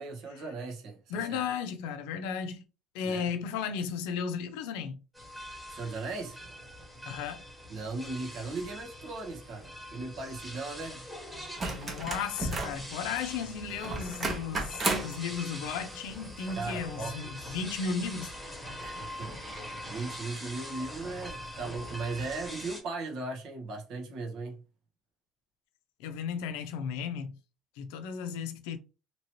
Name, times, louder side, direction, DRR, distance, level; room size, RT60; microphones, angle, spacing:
voice 1, 0.0-1.4 3.0-3.2 5.7-6.4 7.7-11.0 16.5-17.1 18.8-24.6, right 3 dB, 65° right, 1.0 m, -38 dB
voice 2, 1.1-2.6 2.9-5.0 7.0-7.4 11.6-18.5 26.0-27.4 27.8-28.8, left 6 dB, 90° left, 0.5 m, -35 dB
sound 1, 5.1-22.8, equal, 5° right, 1.2 m, -43 dB
sound 2, 11.6-12.8 13.8-15.2 16.8-16.9, right 2 dB, 30° right, 0.9 m, -32 dB
2.9 x 2.8 x 3.0 m
cardioid pair, 115°, 0 cm